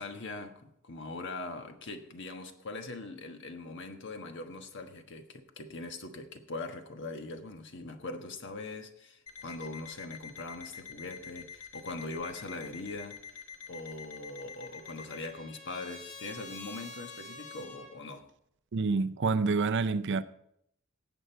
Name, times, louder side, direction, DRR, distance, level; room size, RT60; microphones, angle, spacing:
voice 1, 0.0-13.4 13.7-18.3, left 2 dB, 60° left, 1.3 m, -41 dB
Alarm, 9.3-15.3, left 6 dB, 80° left, 1.5 m, -47 dB
Trumpet, 14.1-18.0, left 3 dB, 40° left, 2.4 m, -48 dB
voice 2, 18.7-20.2, right 4 dB, 60° right, 0.5 m, -27 dB
18.5 x 7.8 x 4.5 m
head